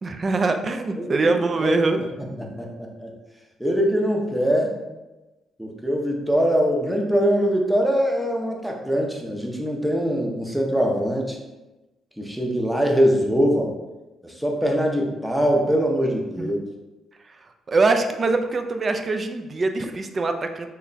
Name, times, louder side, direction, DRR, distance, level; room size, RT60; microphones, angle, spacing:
voice 1, 0.0-2.0 16.4-16.5 17.7-20.7, right 3 dB, 40° right, 6 dB, 0.4 m, -23 dB
voice 2, 1.0-1.3 1.6-2.1 2.4-3.1 3.6-4.7 5.6-11.4 12.2-13.7 14.2-16.6, equal, 5° right, 0 dB, 0.7 m, -22 dB
3.3 x 2.2 x 3.9 m, 1.1 s
cardioid pair, 80°, 0 cm